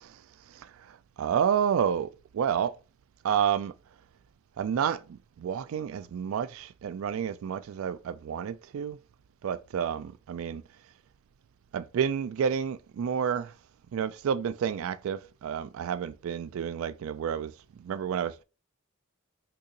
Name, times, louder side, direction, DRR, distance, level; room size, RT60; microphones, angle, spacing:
voice 1, 1.2-2.7 3.2-3.7 4.6-5.0 5.4-9.0 9.4-10.6 11.7-13.5 13.9-17.5 17.8-18.4, right 8 dB, 75° right, 0.3 m, -29 dB
2.8 x 2.7 x 3.8 m
head